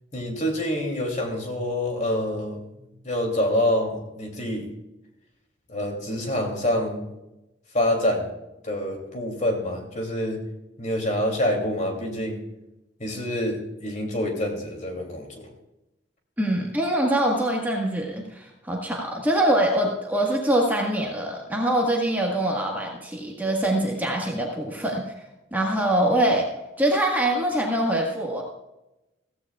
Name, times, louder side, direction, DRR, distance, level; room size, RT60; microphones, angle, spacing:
voice 1, 0.1-2.6 3.0-4.7 5.7-7.1 7.7-8.3 8.6-10.4 10.8-12.4 13.0-15.5, left 1 dB, 40° left, 2 dB, 2.8 m, -26 dB
voice 2, 16.4-25.0 25.5-26.5 26.8-28.4, right 1 dB, 10° right, -1 dB, 1.5 m, -24 dB
15.5 x 15.5 x 2.4 m, 0.96 s
head